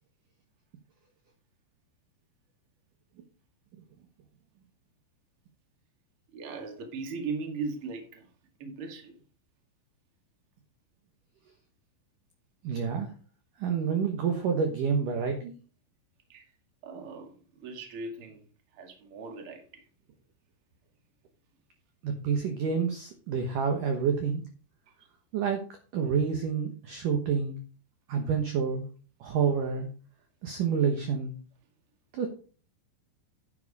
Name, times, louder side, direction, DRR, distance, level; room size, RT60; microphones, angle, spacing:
voice 1, 6.3-8.3 8.6-9.1 16.3-16.4 16.8-18.4 18.8-19.8, right 4 dB, 45° right, 3 dB, 2.0 m, -38 dB
voice 2, 12.6-13.1 13.6-15.6 22.0-24.4 25.3-25.6 25.9-27.6 28.1-28.8 29.2-29.9 30.4-31.3 32.1-32.3, right 6 dB, 65° right, 4 dB, 2.2 m, -28 dB
10.5 x 8.7 x 4.1 m, 0.38 s
omnidirectional pair, 5.4 m